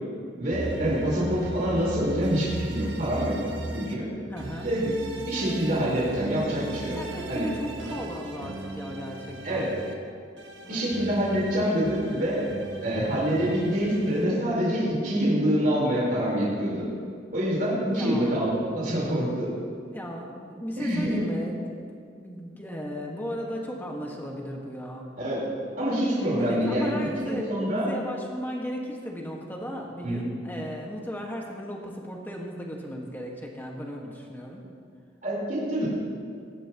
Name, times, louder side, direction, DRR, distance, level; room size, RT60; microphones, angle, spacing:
voice 1, 0.4-3.4 3.7-4.1 4.6-4.9 5.2-7.0 7.3-7.5 9.4-9.7 10.7-12.4 12.8-16.9 17.3-19.5 20.8-21.2 25.2-25.4 25.8-26.9 27.2-27.9 30.0-30.2 35.2-35.9, equal, 45° right, -6 dB, 4.3 m, -26 dB
sound 1, 0.5-3.9 4.4-9.9 10.4-14.2, right 2 dB, 75° right, 1.5 m, -38 dB
voice 2, 4.3-4.7 6.9-9.7 10.6-10.8 17.9-18.4 19.9-21.8 22.2-25.0 26.4-34.6, equal, 10° left, -1 dB, 1.6 m, -36 dB
24.0 x 11.5 x 3.1 m, 2.3 s
head